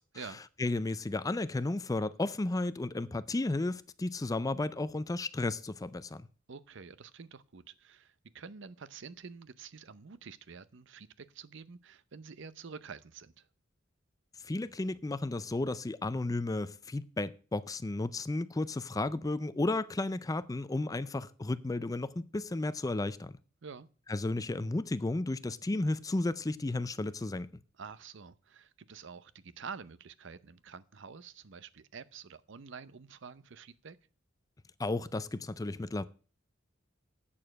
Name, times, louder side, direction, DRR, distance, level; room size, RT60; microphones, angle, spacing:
voice 1, 0.6-6.2 14.4-23.3 24.1-27.5 34.8-36.0, left 2 dB, 15° left, 0.4 m, -33 dB
voice 2, 6.5-13.5 23.6-23.9 27.8-34.0, right 5 dB, 65° right, 0.7 m, -48 dB
8.6 x 6.9 x 7.5 m
head